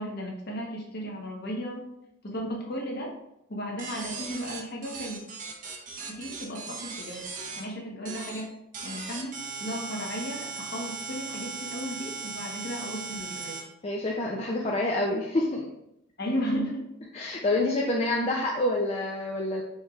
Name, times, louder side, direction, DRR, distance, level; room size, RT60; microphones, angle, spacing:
voice 1, 0.0-1.8 2.2-3.1 3.5-5.2 6.1-7.2 7.6-8.5 8.8-13.6 16.2-16.9, equal, 50° left, -1 dB, 1.0 m, -34 dB
sound 1, 3.8-7.6 8.0-8.4 8.7-13.6, right 5 dB, 40° right, 0.7 m, -38 dB
voice 2, 13.8-15.7 17.1-19.6, left 1 dB, 30° left, -2 dB, 0.4 m, -27 dB
4.5 x 4.4 x 2.4 m, 0.81 s
head